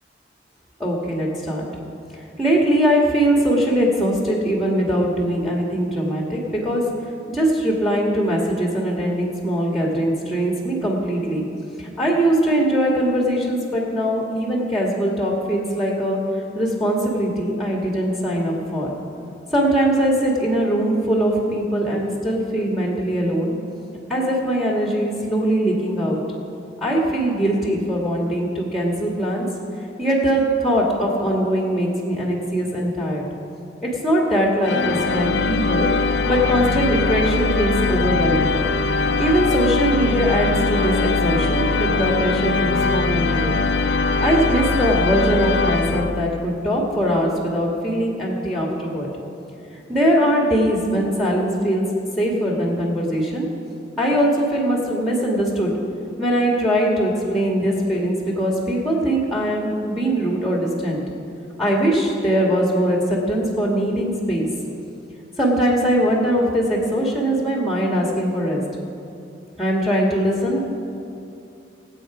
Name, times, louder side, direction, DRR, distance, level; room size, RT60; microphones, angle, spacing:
voice 1, 0.8-1.6 2.4-6.9 7.3-11.5 11.8-16.2 16.6-18.9 19.5-23.5 24.1-26.2 26.8-29.5 30.0-33.2 33.8-38.5 39.2-43.5 44.2-49.1 49.9-51.8 52.2-53.5 54.0-55.7 56.2-61.0 61.6-64.5 65.4-68.6 69.6-70.6, right 1 dB, ahead, -2 dB, 1.8 m, -21 dB
sound 1, 34.6-46.6, left 3 dB, 75° left, 0.5 m, -21 dB
24.0 x 8.1 x 5.0 m, 2.7 s
head